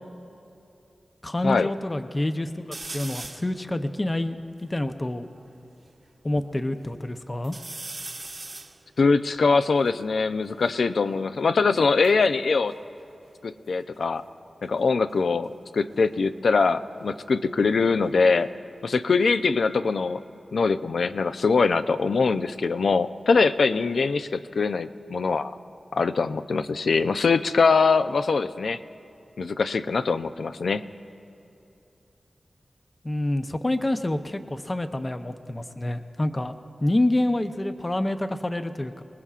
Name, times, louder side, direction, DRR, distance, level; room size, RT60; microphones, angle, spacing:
voice 1, 1.2-2.6 2.9-5.3 6.2-7.6 33.0-36.5 36.8-39.0, left 1 dB, 25° left, 8 dB, 0.7 m, -27 dB
sound 1, 2.7-3.5 4.1-4.2 4.4-5.9 6.4-7.0 7.4-10.8 11.7-13.7 13.9-14.4 16.0-18.6 19.0-19.8, right 2 dB, 35° right, 0.9 m, -43 dB
voice 2, 9.0-12.7 13.4-14.2 14.6-18.5 18.8-20.2 20.5-25.5 25.9-28.8 29.4-30.8, left 4 dB, 75° left, 11 dB, 0.5 m, -23 dB
28.5 x 20.0 x 2.5 m, 2.8 s
wide cardioid pair, 85°, 0 cm